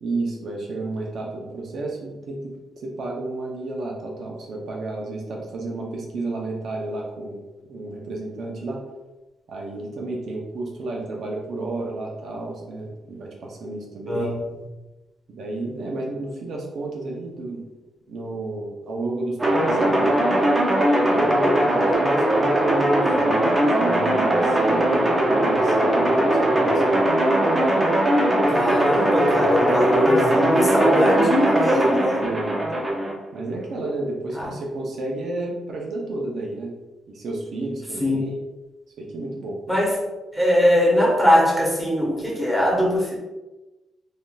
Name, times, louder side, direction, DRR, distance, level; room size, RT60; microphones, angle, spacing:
voice 1, 0.0-7.4 7.7-8.8 9.5-14.4 15.3-17.6 18.1-20.1 21.1-27.0 32.1-32.8 33.3-36.7 37.1-38.3 39.0-39.6, right 2 dB, 65° right, -1 dB, 0.6 m, -31 dB
voice 2, 14.1-14.4 28.5-32.2 34.3-34.5 38.0-38.3 39.7-40.0 40.3-43.1, equal, ahead, -5 dB, 1.2 m, -21 dB
sound 1, 19.4-33.1, right 1 dB, 20° right, 0.6 m, -20 dB
3.4 x 2.6 x 2.3 m, 1.1 s
cardioid pair, 90°, 0 cm